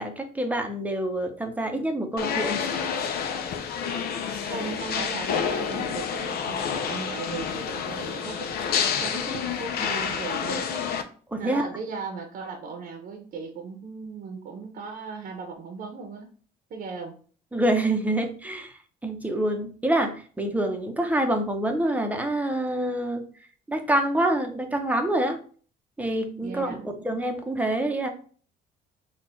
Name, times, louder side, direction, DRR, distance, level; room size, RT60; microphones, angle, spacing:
voice 1, 0.0-2.8 11.3-11.6 17.5-18.7 19.0-23.2 23.7-25.4 26.0-26.7 27.0-28.1, right 1 dB, 10° right, 5 dB, 0.8 m, -26 dB
sound 1, 2.2-11.0, left 7 dB, 65° left, 0.6 m, -29 dB
voice 2, 4.3-8.5 8.9-10.7 11.4-16.3 16.7-17.1 26.4-26.9, right 4 dB, 55° right, 3 dB, 0.9 m, -37 dB
4.3 x 2.4 x 4.3 m, 0.42 s
cardioid pair, 110°, 17 cm